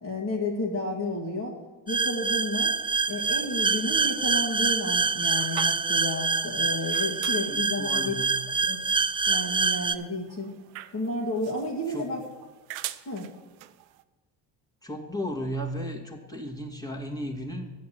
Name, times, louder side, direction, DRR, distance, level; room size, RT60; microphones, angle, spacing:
voice 1, 0.0-1.6 1.9-2.7 3.1-8.1 8.7-8.8 9.3-10.5 10.9-12.2 13.1-13.3, left 2 dB, 35° left, -5 dB, 2.1 m, -31 dB
sound 1, 1.9-9.9, right 4 dB, 10° right, 0.4 m, -26 dB
sound 2, 2.6-14.0, right 15 dB, 90° right, 0.5 m, -46 dB
voice 2, 7.5-8.5 11.9-12.1 14.8-17.7, equal, 10° left, 0 dB, 2.0 m, -35 dB
8.3 x 6.8 x 7.5 m, 1.3 s
supercardioid pair, 55°, 46 cm